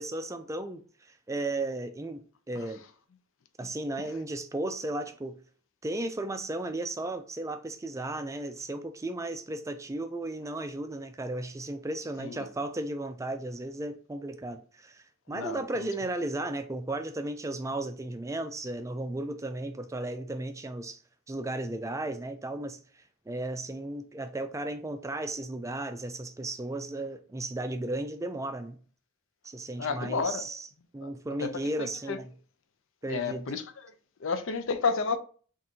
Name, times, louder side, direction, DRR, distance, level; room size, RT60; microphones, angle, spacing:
voice 1, 0.0-2.8 3.6-5.4 5.8-21.0 21.3-22.8 23.3-28.8 29.4-30.7 30.9-32.3 33.0-33.5, right 2 dB, 15° right, 0.3 m, -35 dB
voice 2, 15.3-15.9 29.8-30.5 31.0-31.1 31.4-31.5 31.8-32.2 33.1-33.6 34.2-35.2, left 5 dB, 65° left, 0.5 m, -31 dB
3.6 x 2.5 x 4.2 m
head